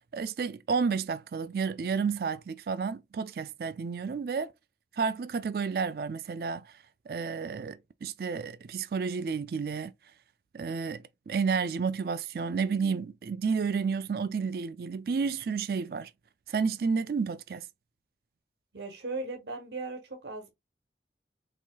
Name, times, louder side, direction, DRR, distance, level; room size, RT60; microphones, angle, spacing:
voice 1, 0.1-4.5 4.9-6.7 7.1-9.9 10.5-16.1 16.5-17.6, right 5 dB, 55° right, 0.3 m, -31 dB
voice 2, 18.7-20.5, right 3 dB, 75° right, 1.0 m, -37 dB
4.5 x 2.9 x 2.2 m
head